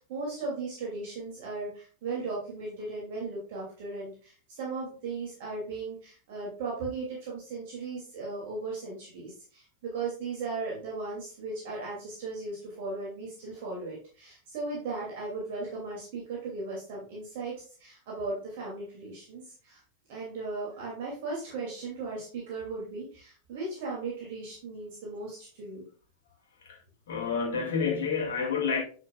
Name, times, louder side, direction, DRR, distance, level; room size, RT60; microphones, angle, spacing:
voice 1, 0.0-19.8 20.1-25.8, right 3 dB, 50° right, 2.7 m, -37 dB
voice 2, 27.1-28.8, left 5 dB, 60° left, 2.4 m, -29 dB
9.4 x 5.9 x 2.4 m
figure-of-eight pair, 90°, 0 cm